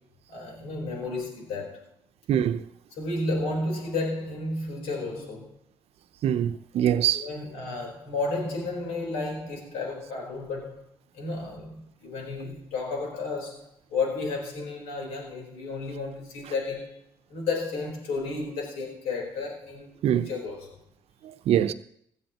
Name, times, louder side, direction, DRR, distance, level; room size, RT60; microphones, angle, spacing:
voice 1, 0.3-1.9 3.0-5.5 6.8-10.8 11.1-17.0 17.3-20.7, left 3 dB, 80° left, 4.2 m, -32 dB
voice 2, 2.3-2.7 6.2-7.3 20.0-20.3 21.2-21.7, right 10 dB, 70° right, 0.8 m, -24 dB
16.5 x 14.0 x 3.0 m
hypercardioid pair, 55°, 11 cm